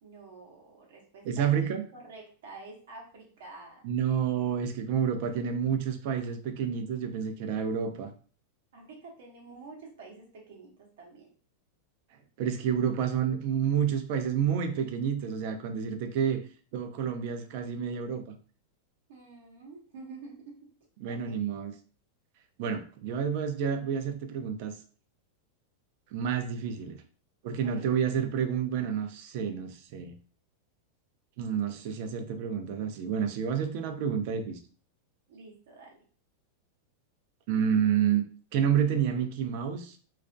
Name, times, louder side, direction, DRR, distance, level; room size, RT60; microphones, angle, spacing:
voice 1, 0.0-1.5 1.9-3.9 8.7-11.3 19.1-20.6 21.1-21.4 27.5-27.9 35.3-36.0, right 3 dB, 75° right, -1 dB, 0.8 m, -48 dB
voice 2, 1.2-1.8 3.8-8.1 12.4-16.4 16.7-18.4 21.0-21.7 22.6-24.8 26.1-27.0 27.4-30.1 31.4-34.6 37.5-38.2 38.5-40.0, right 8 dB, 60° right, 7 dB, 0.4 m, -29 dB
2.3 x 2.0 x 2.5 m, 0.41 s
hypercardioid pair, 115°, 0 cm